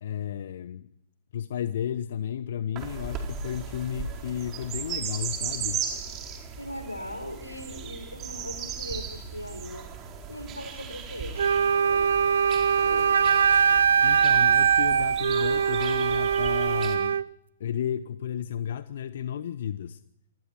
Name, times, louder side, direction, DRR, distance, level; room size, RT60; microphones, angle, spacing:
voice 1, 0.0-0.9 1.3-5.8 14.0-17.2 17.6-20.0, left 9 dB, 55° left, 13 dB, 1.1 m, -33 dB
sound 1, 2.8-17.0, right 6 dB, 25° right, 4.6 m, -37 dB
voice 2, 6.6-9.9 10.3-12.3 12.7-13.1, left 1 dB, 90° left, 9 dB, 4.8 m, -40 dB
Wind instrument woodwind instrument, 11.4-17.3, right 7 dB, 65° right, 0.8 m, -22 dB
27.5 x 24.0 x 4.7 m, 0.80 s
figure-of-eight pair, 115°, 0 cm